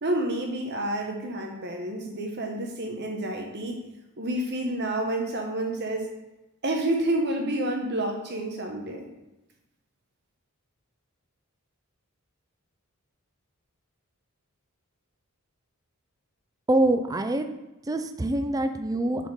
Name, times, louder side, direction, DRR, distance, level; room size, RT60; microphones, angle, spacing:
voice 1, 0.0-3.8 4.2-6.1 6.6-9.1, right 1 dB, 50° right, 2 dB, 1.0 m, -29 dB
voice 2, 16.7-17.5 17.9-19.3, right 1 dB, 15° right, 8 dB, 0.4 m, -25 dB
6.8 x 4.3 x 4.8 m, 0.97 s
head